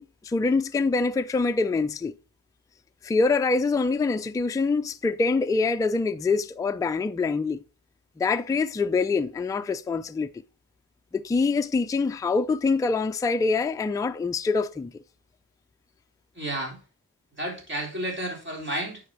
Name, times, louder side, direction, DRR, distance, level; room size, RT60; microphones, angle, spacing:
voice 1, 0.0-2.1 3.0-7.6 8.2-10.3 11.1-14.9, left 4 dB, 10° left, 0.3 m, -25 dB
voice 2, 16.4-16.8 17.4-19.0, right 1 dB, 30° right, 3.8 m, -31 dB
9.6 x 4.9 x 4.7 m
wide cardioid pair, 120°, 37 cm